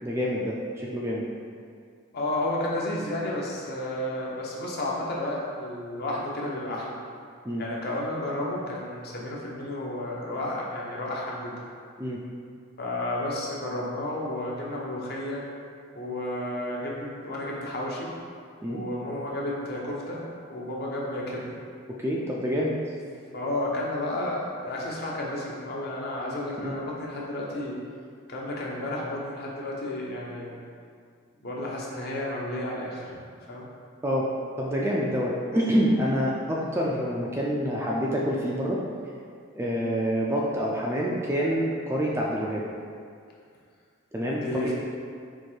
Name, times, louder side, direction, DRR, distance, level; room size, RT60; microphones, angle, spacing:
voice 1, 0.0-1.3 7.4-7.6 12.0-12.2 18.6-18.8 22.0-22.7 26.6-26.7 34.0-34.3 34.6-38.8 39.5-42.7 44.1-44.6, equal, 10° right, -4 dB, 0.3 m, -27 dB
voice 2, 2.1-7.0 7.6-11.5 12.8-15.4 15.9-18.1 18.7-21.6 23.3-27.8 28.3-30.6 31.4-33.1 33.5-33.7 44.3-44.7, left 1 dB, 45° left, -4 dB, 0.8 m, -32 dB
4.6 x 2.6 x 4.4 m, 2.2 s
head